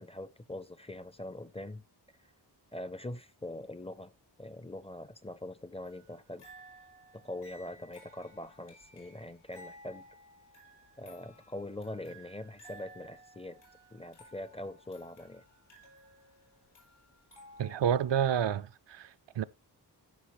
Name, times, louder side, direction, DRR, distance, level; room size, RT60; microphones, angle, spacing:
voice 1, 0.0-1.8 2.7-6.5 7.1-10.1 11.0-13.6 13.9-15.4, left 1 dB, 15° left, 0.5 m, -43 dB
sound 1, 5.8-18.2, right 1 dB, 75° left, 6.2 m, -56 dB
voice 2, 17.6-19.4, right 9 dB, 75° right, 0.6 m, -29 dB
14.5 x 5.8 x 3.1 m
wide cardioid pair, 120°, 43 cm